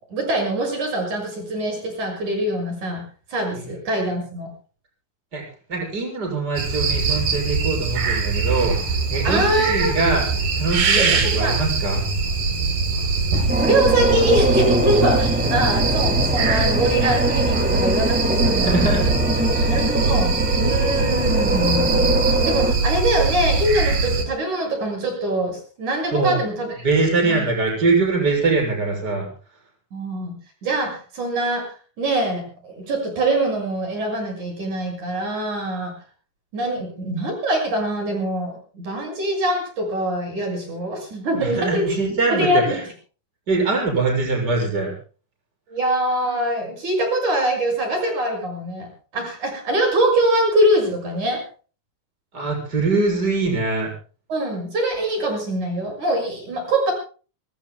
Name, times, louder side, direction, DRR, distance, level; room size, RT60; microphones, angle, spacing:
voice 1, 0.1-3.0 3.3-4.5 9.2-9.9 11.0-11.6 13.6-19.0 19.7-26.7 27.2-27.5 29.9-30.3 30.6-31.7 32.0-35.9 36.5-42.0 42.3-42.8 45.7-51.4 54.3-56.9, right 1 dB, 60° right, 3 dB, 8.0 m, -23 dB
voice 2, 5.7-8.8 9.1-10.3 10.6-12.0 15.4-15.7 18.6-19.1 19.5-19.8 26.1-26.4 26.8-29.3 41.4-42.8 43.5-44.9 52.3-53.9, right 3 dB, 25° right, 1 dB, 7.3 m, -22 dB
sound 1, 6.6-24.2, right 4 dB, 75° right, 5.1 m, -22 dB
sound 2, 13.5-22.7, right 1 dB, 5° right, 2.9 m, -23 dB
24.5 x 24.0 x 2.2 m, 0.39 s
omnidirectional pair, 3.9 m